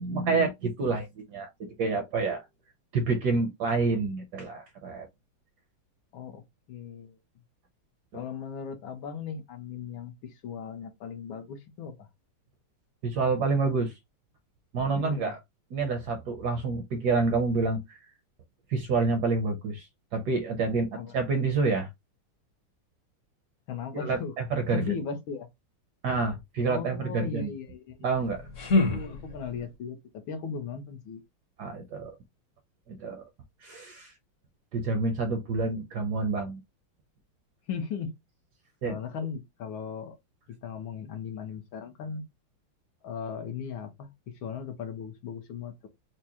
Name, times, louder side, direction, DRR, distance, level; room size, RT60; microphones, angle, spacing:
voice 1, 0.0-1.5 1.8-2.4 2.9-5.1 8.1-8.2 13.0-13.9 14.7-15.4 15.7-18.0 18.7-21.9 23.9-25.0 26.0-27.5 28.0-28.4 31.6-32.1 32.9-33.2 33.6-34.1 34.7-36.6 38.8-39.0, right 4 dB, 65° right, 1.1 m, -28 dB
voice 2, 6.7-7.2 8.1-12.1 14.8-15.3 20.9-21.2 23.7-24.3 24.7-25.5 26.7-28.1 28.7-30.0 30.3-31.2 37.7-38.1 38.8-40.2 40.5-42.2 43.0-45.9, left 6 dB, 75° left, 1.6 m, -37 dB
sound 1, 28.1-29.7, left 3 dB, 45° left, 1.2 m, -28 dB
4.7 x 2.1 x 2.8 m
omnidirectional pair, 2.3 m